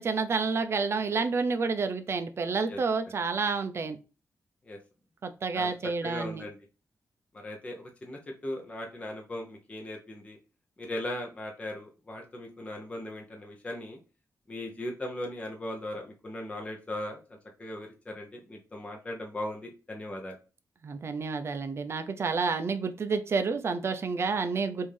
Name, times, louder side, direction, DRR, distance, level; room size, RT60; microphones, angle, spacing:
voice 1, 0.0-4.0 5.2-6.4 20.8-24.9, right 4 dB, 45° right, 8 dB, 0.5 m, -29 dB
voice 2, 6.0-6.6 7.3-10.4 10.8-14.0 14.5-20.4, left 1 dB, 20° left, 1 dB, 0.7 m, -38 dB
5.4 x 2.6 x 3.3 m, 0.33 s
wide cardioid pair, 180°, 6 cm